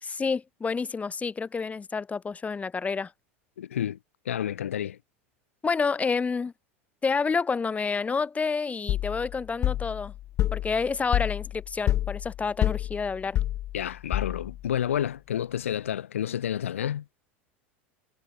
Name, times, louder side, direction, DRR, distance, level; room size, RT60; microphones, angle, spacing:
voice 1, 0.0-3.1 5.6-6.5 7.0-10.1 10.5-13.4, left 5 dB, 20° left, 4.4 m, -29 dB
voice 2, 3.6-4.0 4.3-5.0 13.7-17.1, left 10 dB, 85° left, 3.8 m, -30 dB
sound 1, 8.9-14.7, left 13 dB, 45° left, 1.6 m, -29 dB
hypercardioid pair, 90°, 7 cm